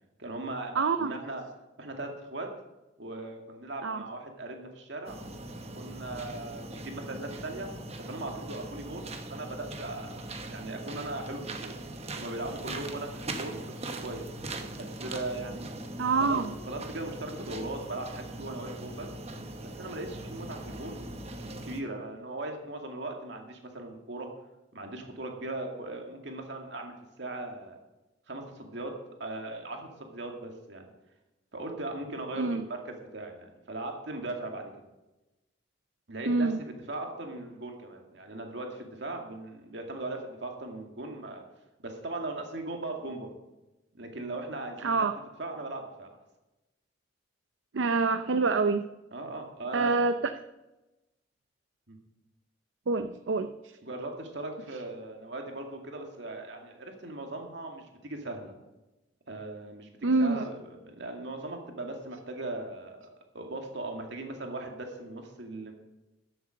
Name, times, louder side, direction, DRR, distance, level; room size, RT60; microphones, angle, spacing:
voice 1, 0.2-1.4 1.8-2.5 3.0-5.2 5.7-7.7 8.1-11.7 12.2-14.2 14.8-15.7 16.2-19.1 19.7-21.0 21.4-24.3 24.7-27.8 28.3-28.9 29.2-30.9 31.5-34.8 36.1-41.4 41.8-43.3 43.9-45.1 45.4-46.1 49.1-50.0 51.9-52.0 53.8-58.5 59.3-59.9 60.2-60.6 60.9-63.1 63.3-65.7, right 2 dB, 65° right, 2 dB, 2.3 m, -39 dB
voice 2, 0.7-1.1 3.8-4.0 16.0-16.5 32.3-32.7 36.3-36.6 44.8-45.1 47.7-48.8 49.7-50.3 52.9-53.8 60.0-60.4, right 3 dB, 80° right, 8 dB, 0.6 m, -26 dB
sound 1, 5.0-21.8, right 2 dB, 35° right, 1.2 m, -41 dB
13.5 x 7.9 x 6.5 m, 1.0 s
head